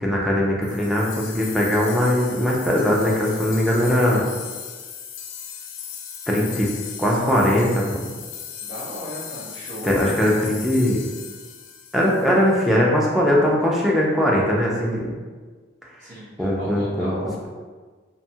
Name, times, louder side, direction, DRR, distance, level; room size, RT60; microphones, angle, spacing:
voice 1, 0.0-4.3 6.3-6.7 7.0-8.1 9.8-11.0 11.9-15.1 16.0-16.1 16.4-17.2, equal, ahead, -4 dB, 0.3 m, -20 dB
sound 1, 0.6-12.6, left 8 dB, 85° left, 0.3 m, -37 dB
voice 2, 8.6-10.1 16.0-17.5, equal, 45° right, -12 dB, 0.7 m, -36 dB
2.6 x 2.2 x 2.7 m, 1.4 s
head